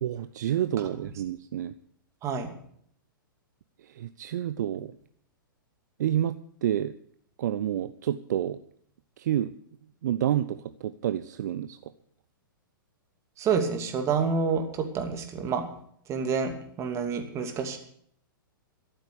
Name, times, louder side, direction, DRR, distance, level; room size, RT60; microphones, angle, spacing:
voice 1, 0.0-1.7 3.8-4.9 6.0-6.9 7.4-8.6 9.2-9.5 10.0-11.9, right 11 dB, 55° right, 13 dB, 0.7 m, -29 dB
voice 2, 2.2-2.5 13.4-15.6 16.1-17.8, right 5 dB, 25° right, 6 dB, 2.7 m, -28 dB
13.5 x 12.5 x 6.9 m, 0.64 s
figure-of-eight pair, 110°, 12 cm